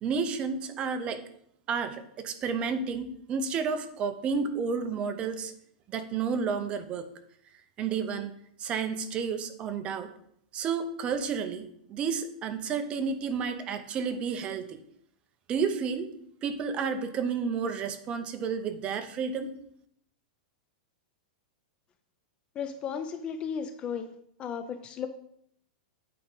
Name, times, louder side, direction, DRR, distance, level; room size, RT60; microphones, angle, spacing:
voice 1, 0.0-1.2 1.7-5.5 5.9-7.1 7.8-8.3 8.6-10.1 10.5-14.8 15.5-16.1 16.4-19.5, right 5 dB, 25° right, 9 dB, 0.6 m, -31 dB
voice 2, 22.6-24.1 24.4-25.1, left 7 dB, 20° left, 10 dB, 0.4 m, -34 dB
8.6 x 4.8 x 3.9 m, 0.70 s
supercardioid pair, 155°, 5 cm